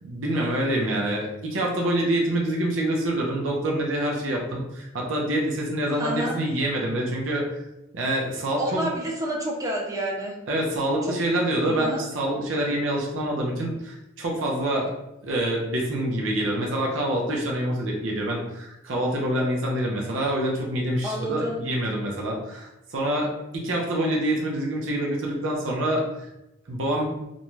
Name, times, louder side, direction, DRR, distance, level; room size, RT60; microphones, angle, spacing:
voice 1, 0.0-7.5 7.9-8.9 10.5-14.9 15.2-26.3 26.7-27.2, right 1 dB, 70° right, -2 dB, 0.6 m, -26 dB
voice 2, 5.9-6.4 8.6-10.3 11.0-11.2 11.6-12.0 21.0-21.6, equal, 15° right, -2 dB, 0.5 m, -29 dB
2.6 x 2.2 x 3.0 m, 0.89 s
head